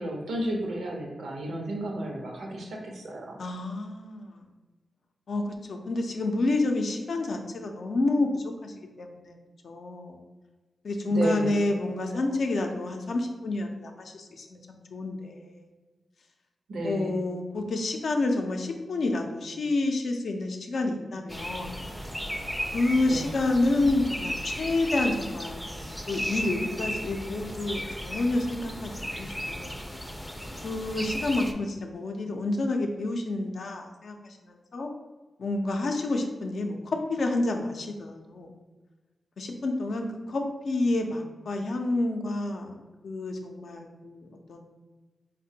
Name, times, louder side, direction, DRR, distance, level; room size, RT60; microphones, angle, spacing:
voice 1, 0.0-3.4 11.1-11.5 12.1-12.2 16.7-17.2 23.1-23.3, right 1 dB, 90° right, 0 dB, 0.7 m, -32 dB
voice 2, 3.4-4.4 5.3-9.4 9.6-10.2 10.8-15.6 16.8-21.8 22.7-25.6 26.1-29.7 30.6-34.9 35.4-38.5 39.4-44.6, left 2 dB, 70° left, 3 dB, 0.4 m, -29 dB
sound 1, 21.3-31.5, equal, ahead, 0.4 m, -35 dB
4.2 x 2.2 x 2.7 m, 1.3 s
cardioid pair, 55°, 0 cm